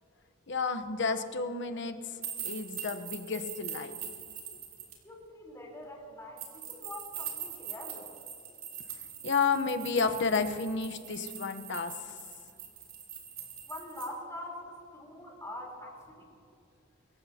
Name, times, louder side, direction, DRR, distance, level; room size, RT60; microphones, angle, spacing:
voice 1, 0.5-2.0 2.4-3.9 9.2-12.0, left 4 dB, 60° left, 9 dB, 0.9 m, -31 dB
sound 1, 2.2-4.9 6.4-14.1, right 9 dB, 75° right, 3.1 m, -42 dB
voice 2, 5.0-8.1 13.7-16.2, left 1 dB, 15° left, -2 dB, 3.8 m, -44 dB
25.0 x 15.0 x 2.8 m, 2.4 s
head